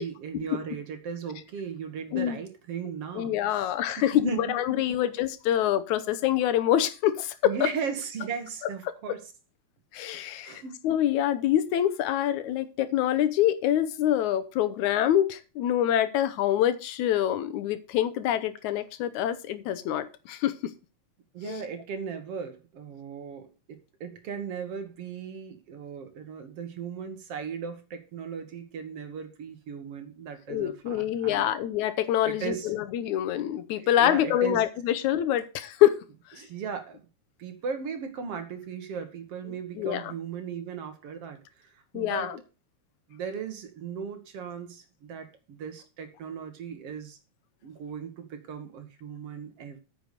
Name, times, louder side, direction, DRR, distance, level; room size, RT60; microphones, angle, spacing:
voice 1, 0.0-5.0 7.4-9.2 10.4-10.8 21.3-31.5 32.2-32.7 33.8-34.6 36.4-37.0 37.4-42.3 43.1-47.2 47.6-49.8, right 6 dB, 60° right, 7 dB, 2.4 m, -37 dB
voice 2, 3.2-7.7 9.9-20.5 21.5-21.6 30.5-36.0 39.8-40.1 41.9-42.4, left 11 dB, 85° left, 12 dB, 2.3 m, -26 dB
9.2 x 6.6 x 6.7 m, 0.32 s
omnidirectional pair, 3.3 m